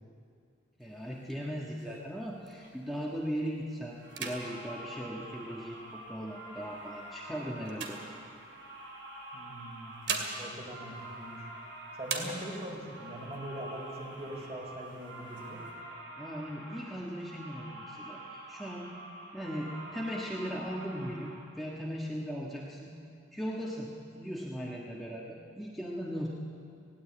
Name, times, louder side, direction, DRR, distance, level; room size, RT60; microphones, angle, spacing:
voice 1, 0.8-8.0 16.2-18.9 19.3-22.9 23.3-26.3, equal, ahead, -4 dB, 1.4 m, -38 dB
sound 1, 0.8-3.0 3.5-3.7 4.0-6.0 6.6-8.8 9.7-11.7 12.0-12.9 13.3-13.4 13.7-14.4 14.8-15.7, right 4 dB, 70° right, 2.4 m, -41 dB
sound 2, 3.9-21.3, right 1 dB, 90° right, 7.1 m, -47 dB
voice 2, 9.3-10.0 10.4-11.5 12.0-15.6, right 1 dB, 35° right, -1 dB, 4.5 m, -42 dB
19.0 x 17.0 x 8.6 m, 2.3 s
head